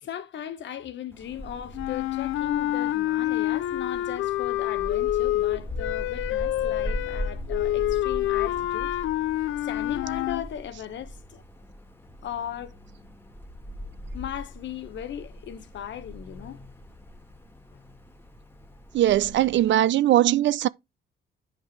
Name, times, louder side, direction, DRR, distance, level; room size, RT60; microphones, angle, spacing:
voice 1, 0.0-8.9 9.6-11.4 12.2-12.7 14.1-16.6, left 10 dB, 65° left, 1.4 m, -37 dB
Wind, 1.1-19.7, left 1 dB, 10° left, 1.7 m, -40 dB
sound 1, 1.7-10.4, left 14 dB, 85° left, 0.6 m, -27 dB
voice 2, 18.9-20.7, right 13 dB, 65° right, 0.5 m, -20 dB
10.0 x 5.4 x 3.2 m
cardioid pair, 90°, 20 cm